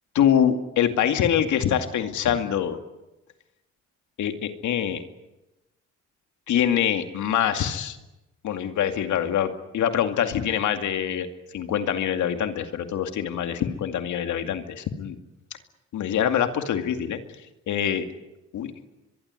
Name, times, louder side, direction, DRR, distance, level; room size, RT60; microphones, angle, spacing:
voice 1, 0.1-2.8 4.2-5.0 6.5-8.0 8.4-11.3 11.5-15.2 15.9-17.2 17.7-18.1 18.5-18.7, left 9 dB, 75° left, 7 dB, 2.3 m, -24 dB
23.5 x 22.5 x 9.6 m, 1.0 s
cardioid pair, 90°, 30 cm